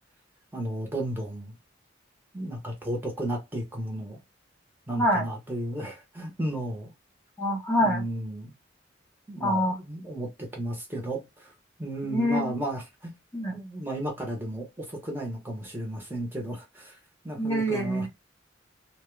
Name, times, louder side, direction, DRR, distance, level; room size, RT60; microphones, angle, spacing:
voice 1, 0.5-1.5 2.3-4.2 4.9-6.9 7.8-8.5 9.3-11.5 11.8-13.1 13.5-17.0 17.2-18.1, right 1 dB, 10° right, 0.9 m, -34 dB
voice 2, 7.4-8.0 9.4-9.8 12.0-12.5 13.3-13.6 17.4-18.1, equal, 15° left, 0.9 m, -25 dB
2.9 x 2.2 x 3.1 m
head